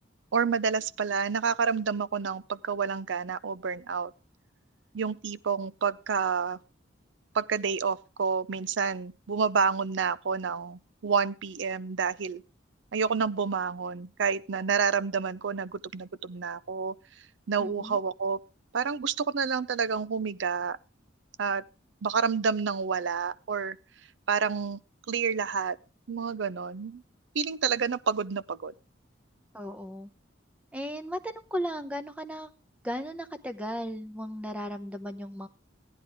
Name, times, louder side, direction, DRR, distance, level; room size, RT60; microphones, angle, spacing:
voice 1, 0.3-4.1 4.9-6.6 7.3-12.4 12.9-16.9 17.5-18.4 18.7-20.8 21.4-21.6 22.0-23.8 24.3-24.8 25.1-25.8 26.1-27.0 27.3-28.7, right 5 dB, 65° right, 0.5 m, -29 dB
voice 2, 17.6-18.0 29.5-30.1 30.7-32.5 32.8-35.5, equal, 5° right, 0.8 m, -36 dB
15.0 x 10.0 x 3.6 m
head